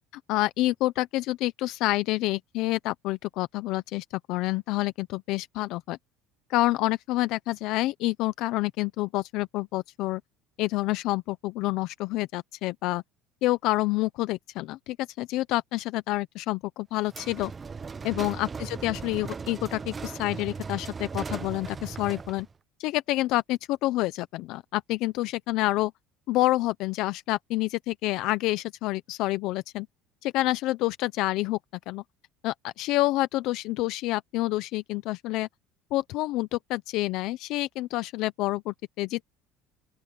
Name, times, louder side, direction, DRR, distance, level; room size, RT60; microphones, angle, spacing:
voice 1, 0.1-6.0 6.5-10.2 10.6-13.0 13.4-17.5 18.0-22.5 22.8-25.9 26.3-29.9 30.2-31.6 31.9-32.0 32.4-35.5 35.9-39.2, left 18 dB, 55° left, 0.5 m, -28 dB
sound 1, 17.1-22.5, right 5 dB, 15° right, 0.5 m, -37 dB
open air
cardioid pair, 165°, 0 cm